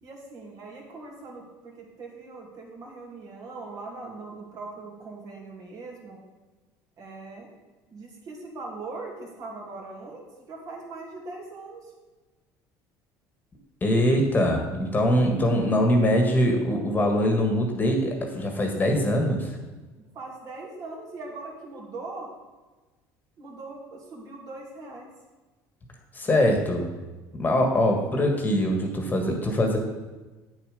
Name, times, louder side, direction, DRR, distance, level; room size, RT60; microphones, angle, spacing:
voice 1, 0.0-6.2 7.0-7.5 7.9-11.9 20.0-22.3 23.4-25.1, right 3 dB, 50° right, -1 dB, 2.7 m, -40 dB
voice 2, 13.8-19.6 26.1-26.9 27.3-29.8, equal, 20° left, 2 dB, 1.6 m, -23 dB
8.7 x 7.3 x 5.1 m, 1.2 s
cardioid pair, 115°, 8 cm